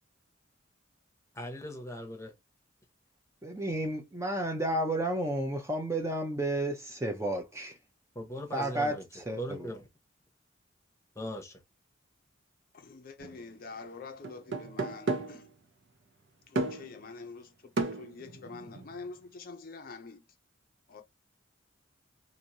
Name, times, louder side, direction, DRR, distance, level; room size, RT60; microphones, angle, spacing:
voice 1, 1.3-2.3 8.1-9.0 9.4-9.9 11.2-11.6, equal, 15° left, 0.9 m, -39 dB
voice 2, 3.4-7.7 8.5-9.7, right 1 dB, 15° right, 0.6 m, -32 dB
voice 3, 12.7-15.5 16.5-20.2 20.9-21.0, left 4 dB, 45° left, 0.5 m, -46 dB
sound 1, 13.2-13.4 14.2-15.5 16.6-17.0 17.8-19.1, right 2 dB, 65° right, 0.7 m, -34 dB
3.0 x 2.6 x 2.6 m
head